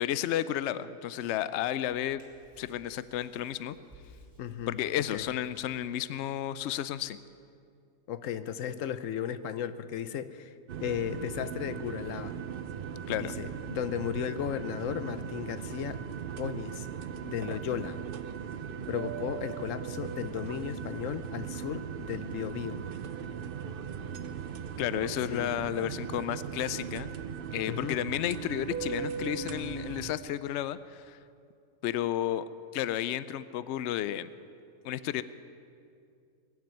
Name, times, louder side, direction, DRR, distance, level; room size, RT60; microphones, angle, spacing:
voice 1, 0.0-2.2 2.6-3.8 4.7-7.2 13.1-13.3 24.8-27.1 27.5-31.2 31.8-32.5 32.7-34.3 34.8-35.2, left 11 dB, 85° left, 15 dB, 0.6 m, -32 dB
Hands, 1.8-6.8, equal, 15° right, 3.2 m, -59 dB
voice 2, 4.4-4.8 5.1-5.3 8.1-10.5 10.8-12.4 13.1-16.0 16.4-16.9 17.3-18.0 18.9-22.8 25.3-25.5 27.7-28.0, left 9 dB, 60° left, 13 dB, 0.9 m, -35 dB
sound 1, 10.7-30.2, right 7 dB, 75° right, 0.5 m, -38 dB
21.5 x 7.4 x 9.2 m, 2.4 s
omnidirectional pair, 1.7 m